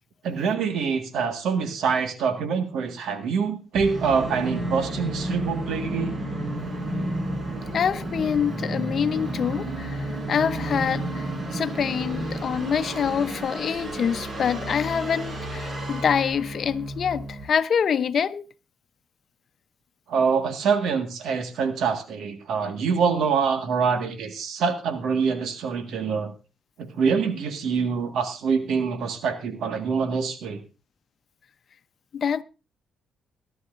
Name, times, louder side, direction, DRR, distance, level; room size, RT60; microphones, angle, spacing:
voice 1, 0.2-6.1 20.1-26.3 26.8-30.6, right 5 dB, 75° right, 1.8 m, -25 dB
Musical instrument, 3.7-17.4, right 1 dB, 40° right, 6.3 m, -31 dB
voice 2, 7.7-18.5 32.1-32.4, left 7 dB, 55° left, 0.8 m, -26 dB
23.0 x 11.0 x 2.6 m
cardioid pair, 90°, 0 cm